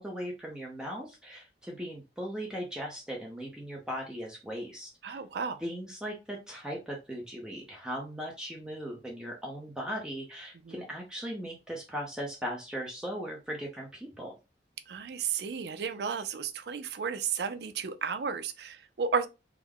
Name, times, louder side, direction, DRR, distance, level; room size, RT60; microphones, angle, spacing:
voice 1, 0.0-5.2 5.6-14.3, equal, 5° right, 0.6 m, -38 dB
voice 2, 5.0-5.6 10.7-10.8 14.9-19.3, right 6 dB, 65° right, 0.4 m, -33 dB
3.4 x 2.1 x 3.5 m
head